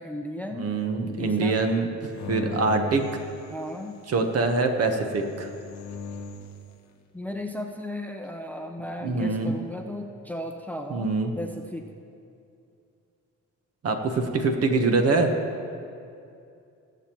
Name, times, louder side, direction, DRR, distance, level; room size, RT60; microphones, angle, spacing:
voice 1, 0.0-0.7 1.2-1.6 3.5-4.0 7.1-11.9, left 1 dB, 5° left, 4 dB, 0.7 m, -35 dB
voice 2, 0.6-3.2 4.1-5.5 9.0-9.5 10.9-11.3 13.8-15.3, right 3 dB, 55° right, 5 dB, 1.2 m, -24 dB
sound 1, 2.1-4.1 5.1-6.6, left 3 dB, 65° left, 0.9 m, -38 dB
20.5 x 7.1 x 3.0 m, 2.5 s
cardioid pair, 90°, 30 cm